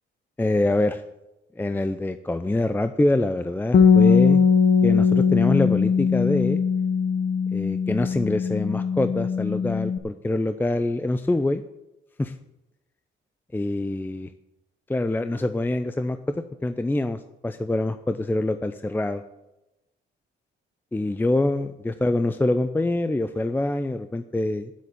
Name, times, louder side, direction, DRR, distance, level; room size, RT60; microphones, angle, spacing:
voice 1, 0.4-1.0 1.6-4.4 4.8-6.6 7.5-11.6 12.2-12.3 13.5-14.3 14.9-19.2 20.9-24.8, left 2 dB, 10° left, 10 dB, 0.6 m, -25 dB
Bass guitar, 3.7-10.0, left 6 dB, 50° left, 1.0 m, -20 dB
9.4 x 8.1 x 8.6 m, 0.95 s
cardioid pair, 90°, 20 cm